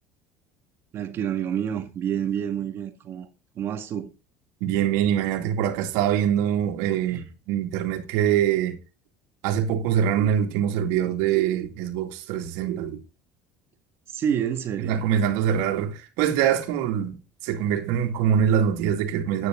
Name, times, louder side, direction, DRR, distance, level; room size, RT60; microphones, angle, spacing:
voice 1, 0.9-3.3 3.6-4.1 7.1-7.2 14.1-15.1, right 9 dB, 45° right, 1.8 m, -28 dB
voice 2, 4.6-8.8 9.4-13.0 14.8-19.5, right 9 dB, 80° right, 2.4 m, -24 dB
10.0 x 9.4 x 3.8 m
cardioid pair, 120°, 5 cm